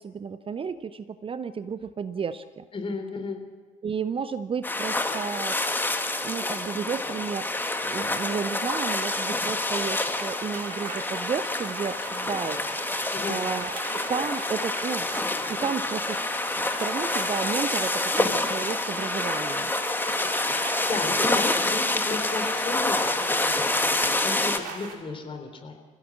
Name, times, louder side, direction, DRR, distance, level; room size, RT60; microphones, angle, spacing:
voice 1, 0.0-2.6 3.8-5.6 6.2-7.5 7.8-15.1 15.5-16.3 16.6-19.7, right 6 dB, 30° right, 14 dB, 0.8 m, -32 dB
voice 2, 2.7-3.4 13.1-13.5 20.9-25.7, left 3 dB, 30° left, 4 dB, 3.8 m, -34 dB
sound 1, 4.6-24.6, left 2 dB, 10° left, 1.9 m, -27 dB
sound 2, 9.6-24.9, right 5 dB, 55° right, 3.5 m, -42 dB
26.5 x 15.5 x 7.5 m, 1.4 s
figure-of-eight pair, 50°, 18 cm